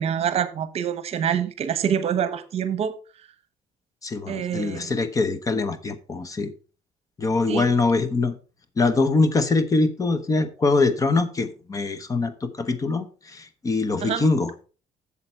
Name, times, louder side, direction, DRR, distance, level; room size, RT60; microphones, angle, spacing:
voice 1, 0.0-3.0 4.3-4.9 7.5-7.6 14.0-14.3, right 8 dB, 55° right, 1.0 m, -26 dB
voice 2, 4.0-6.5 7.2-8.3 8.8-14.5, left 3 dB, 25° left, 0.9 m, -23 dB
7.9 x 7.3 x 4.5 m
cardioid pair, 125°, 13 cm